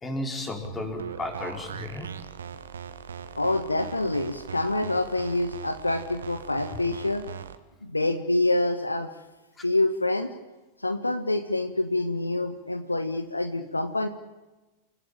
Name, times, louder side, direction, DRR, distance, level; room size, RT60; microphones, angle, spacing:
voice 1, 0.0-2.1 9.6-9.7, left 2 dB, 15° left, 4 dB, 4.8 m, -34 dB
sound 1, 0.6-7.6, right 7 dB, 70° right, 1.6 m, -40 dB
voice 2, 3.4-7.2 7.8-9.1 9.6-10.3 10.8-14.1, left 2 dB, 85° left, 9 dB, 1.5 m, -26 dB
29.5 x 17.0 x 8.8 m, 1.1 s
figure-of-eight pair, 90°, 0 cm